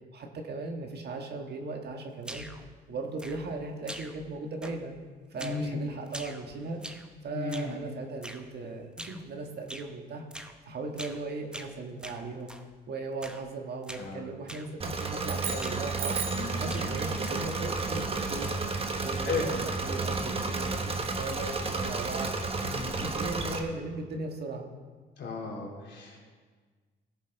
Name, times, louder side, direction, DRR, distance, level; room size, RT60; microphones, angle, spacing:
voice 1, 0.1-2.5 2.9-4.9 5.3-10.2 10.6-12.6 12.9-18.7 19.0-22.3 22.9-24.7, right 3 dB, 55° right, 3 dB, 1.5 m, -38 dB
sound 1, 2.2-2.7 3.2-3.6 3.9-4.3 4.6-5.0 5.4-5.7 6.1-7.1 7.5-7.8 8.2-8.5 9.0-9.3 9.7-9.9 10.3-10.6 11.0-11.2 11.5-12.7 13.2-13.5 13.8-14.1 14.5-14.7 15.0-15.3 15.6-16.4 16.7-17.6, right 1 dB, 5° right, 0.8 m, -44 dB
voice 2, 5.4-5.8 7.3-7.8 13.9-14.2 16.3-17.0 19.2-19.5 22.6-23.0 25.2-26.2, left 4 dB, 65° left, -2 dB, 3.4 m, -35 dB
Engine / Mechanisms, 14.8-23.6, right 3 dB, 30° right, 1.2 m, -32 dB
sound 2, 15.2-16.6, right 6 dB, 70° right, 1.5 m, -36 dB
17.5 x 7.3 x 4.0 m, 1.5 s
cardioid pair, 90°, 20 cm